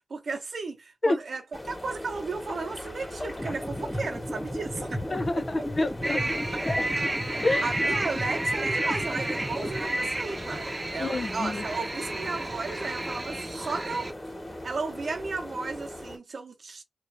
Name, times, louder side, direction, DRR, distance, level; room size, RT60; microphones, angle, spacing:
voice 1, 0.1-5.0 5.4-5.5 7.0-14.1 14.6-16.8, right 4 dB, 70° right, 0.8 m, -34 dB
sound 1, 1.5-16.2, left 1 dB, 25° left, 1.6 m, -40 dB
sound 2, 3.4-9.9, equal, 5° left, 0.9 m, -35 dB
voice 2, 5.1-6.8 7.4-7.7 11.0-11.6, left 2 dB, 50° left, 0.5 m, -28 dB
sound 3, 6.0-14.1, right 1 dB, 25° right, 0.8 m, -31 dB
3.0 x 2.5 x 2.6 m
cardioid pair, 50°, 0 cm